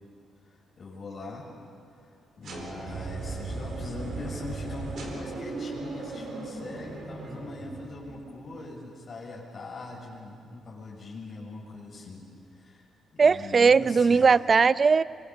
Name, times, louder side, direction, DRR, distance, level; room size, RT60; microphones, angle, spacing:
voice 1, 0.5-1.5 2.0-2.1 2.4-12.2 12.5-12.9 13.1-14.3, left 2 dB, 50° left, -3 dB, 6.9 m, -41 dB
sound 1, 2.4-8.4, right 3 dB, 65° right, 4.3 m, -37 dB
voice 2, 13.2-15.0, right 5 dB, 45° right, 17 dB, 0.6 m, -19 dB
25.0 x 23.0 x 7.2 m, 2.4 s
supercardioid pair, 55°, 0 cm